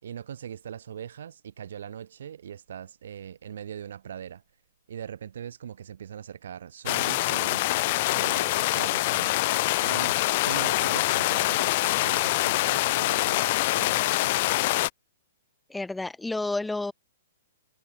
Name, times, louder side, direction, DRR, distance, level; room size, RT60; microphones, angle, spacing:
voice 1, 0.0-4.4 4.9-7.6 8.1-9.5 9.8-10.2 10.4-14.4, right 9 dB, 60° right, 5.5 m, -40 dB
sound 1, 6.9-14.9, left 19 dB, 30° left, 0.4 m, -25 dB
voice 2, 15.7-16.9, left 2 dB, 5° left, 1.3 m, -30 dB
hypercardioid pair, 175°, 0 cm